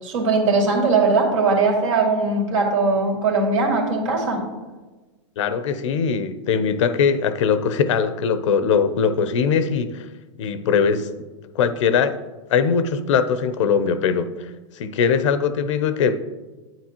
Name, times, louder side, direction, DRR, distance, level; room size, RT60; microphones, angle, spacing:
voice 1, 0.0-4.4, right 3 dB, 80° right, 1 dB, 2.4 m, -20 dB
voice 2, 5.4-10.1 10.4-11.1 11.5-12.2 12.5-14.5 14.8-16.2, left 6 dB, 80° left, 12 dB, 0.7 m, -21 dB
9.1 x 8.8 x 2.9 m, 1.2 s
supercardioid pair, 140°, 16 cm